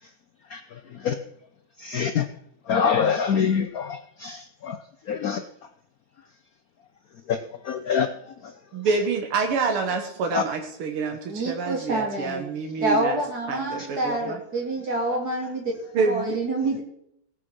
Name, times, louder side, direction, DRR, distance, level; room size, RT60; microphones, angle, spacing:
voice 1, 1.8-2.2 2.7-3.9 4.2-4.4 4.7-4.8 5.1-5.4 7.7-8.1 10.3-10.4, left 7 dB, 70° left, 9 dB, 0.8 m, -23 dB
voice 2, 8.7-13.2 13.5-14.4 15.9-16.4, right 4 dB, 80° right, 4 dB, 2.2 m, -27 dB
voice 3, 11.3-12.4 12.8-15.7 16.1-16.8, right 2 dB, 45° right, -1 dB, 3.9 m, -27 dB
17.0 x 6.3 x 6.1 m, 0.74 s
omnidirectional pair, 2.4 m